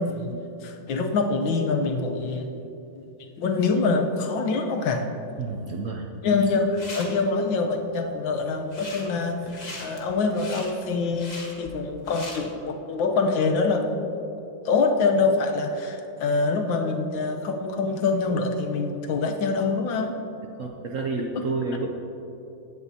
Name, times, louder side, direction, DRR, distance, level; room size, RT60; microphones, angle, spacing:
voice 1, 0.0-2.5 3.4-5.1 6.2-9.4 9.8-11.3 11.6-14.3 14.6-20.2, left 4 dB, 85° left, 4 dB, 1.6 m, -25 dB
voice 2, 5.4-6.1 20.6-21.9, right 3 dB, 65° right, 1 dB, 0.8 m, -29 dB
sound 1, 6.4-7.1 8.6-9.1 9.4-12.4, left 2 dB, 25° left, 1.3 m, -39 dB
16.0 x 9.5 x 2.8 m, 2.8 s
omnidirectional pair, 2.0 m